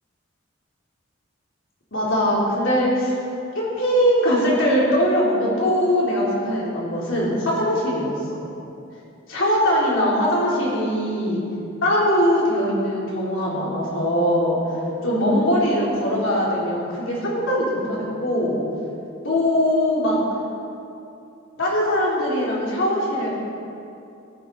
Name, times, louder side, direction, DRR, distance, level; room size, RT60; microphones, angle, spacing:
voice 1, 1.9-3.1 3.6-8.1 9.3-11.4 11.8-14.6 15.0-18.6 19.2-20.2 21.6-23.4, equal, 70° left, -6 dB, 3.6 m, -21 dB
14.5 x 12.5 x 4.2 m, 2.6 s
head